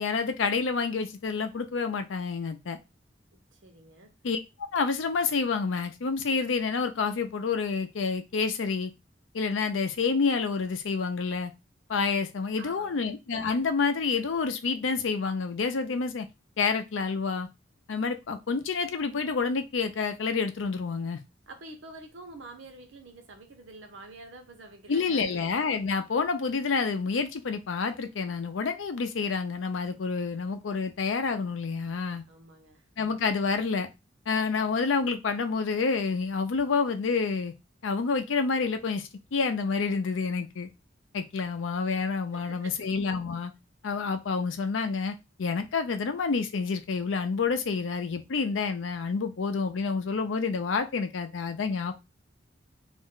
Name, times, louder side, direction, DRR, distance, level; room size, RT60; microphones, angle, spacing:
voice 1, 0.0-2.8 4.2-4.4 4.7-8.9 9.3-11.5 11.9-16.3 16.6-17.5 17.9-21.2 24.9-32.2 33.0-33.9 34.3-37.5 37.8-40.7 41.1-43.5 43.8-51.9, left 4 dB, 90° left, 0.5 m, -28 dB
voice 2, 3.3-4.1 12.6-13.1 21.5-25.4 32.3-32.8 42.3-42.9, right 2 dB, 80° right, 0.8 m, -47 dB
2.5 x 2.2 x 3.6 m
head